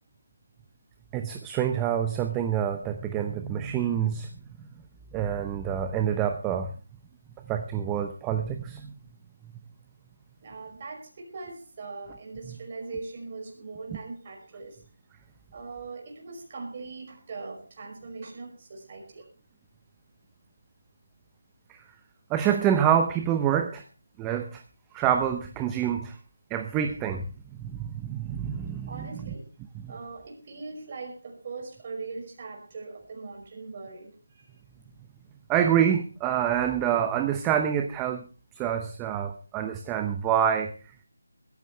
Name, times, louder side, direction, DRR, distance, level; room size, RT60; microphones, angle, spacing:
voice 1, 1.1-4.3 5.1-6.7 7.5-8.9 22.3-23.8 24.2-24.6 24.9-26.1 26.5-27.2 27.6-29.1 35.5-38.2 38.6-40.7, right 9 dB, 10° right, 6 dB, 0.7 m, -26 dB
voice 2, 10.4-14.8 15.5-19.3 28.9-29.5 29.9-34.5, right 4 dB, 30° right, 1 dB, 5.6 m, -40 dB
20.0 x 14.5 x 3.2 m, 0.33 s
figure-of-eight pair, 170°, 0 cm